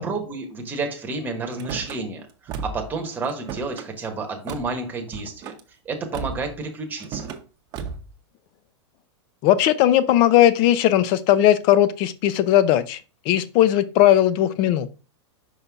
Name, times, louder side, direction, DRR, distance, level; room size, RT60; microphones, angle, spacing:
voice 1, 0.0-5.5 5.8-7.3, right 3 dB, 10° right, 3 dB, 1.2 m, -30 dB
Car / Slam, 1.5-2.0 2.5-2.9 3.2-3.9 4.5-4.7 5.1-5.6 6.1-6.5 7.0-7.4 7.7-8.1, right 6 dB, 30° right, 0.8 m, -34 dB
voice 2, 9.4-13.0 13.3-14.9, left 12 dB, 35° left, 15 dB, 0.6 m, -18 dB
5.5 x 5.4 x 3.5 m, 0.33 s
supercardioid pair, 150°, 15 cm